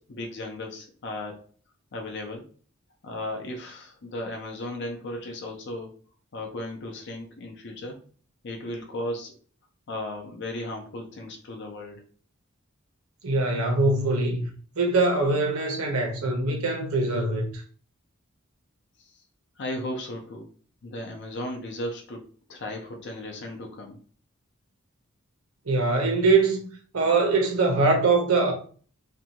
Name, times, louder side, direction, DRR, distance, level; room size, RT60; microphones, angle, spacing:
voice 1, 0.0-1.4 1.9-2.5 3.0-5.9 6.3-8.0 8.4-9.3 9.9-12.0 19.6-20.5 20.8-24.0, left 1 dB, 55° left, 0.5 m, -35 dB
voice 2, 13.2-14.5 14.8-17.6 25.7-26.7 26.9-28.5, right 3 dB, 80° right, 0.8 m, -23 dB
2.6 x 2.3 x 2.8 m
head